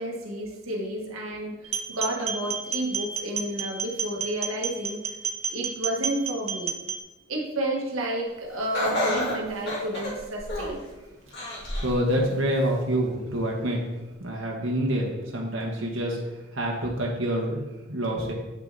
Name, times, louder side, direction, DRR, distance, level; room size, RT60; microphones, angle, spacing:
voice 1, 0.0-5.0 5.5-6.7 7.3-10.8, right 1 dB, 85° right, -1 dB, 1.4 m, -31 dB
sound 1, 1.6-7.0, right 6 dB, 30° right, 0.6 m, -31 dB
Laughter, 8.7-10.9 11.3-12.0 12.5-12.6 13.5-13.6, left 1 dB, 55° left, 2.6 m, -29 dB
voice 2, 11.8-13.8 14.2-16.2 16.5-18.3, right 1 dB, 70° right, -1 dB, 1.3 m, -27 dB
8.3 x 6.2 x 4.1 m, 1.1 s
head